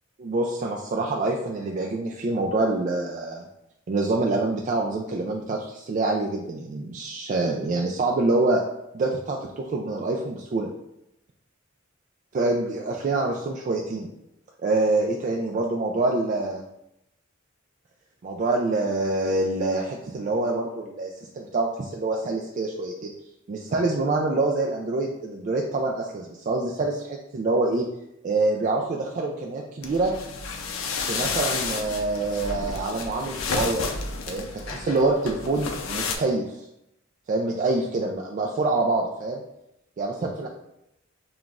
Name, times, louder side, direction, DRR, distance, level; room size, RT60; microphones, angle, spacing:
voice 1, 0.2-3.5 3.9-8.6 8.9-10.7 12.3-14.1 14.6-16.6 18.2-23.1 23.5-27.8 28.2-30.1 31.0-33.9 34.3-36.7 37.3-39.4 40.0-40.5, right 2 dB, 40° right, -1 dB, 0.3 m, -26 dB
sound 1, 29.8-36.2, left 4 dB, 90° left, 0.5 m, -31 dB
5.6 x 2.3 x 2.4 m, 0.83 s
head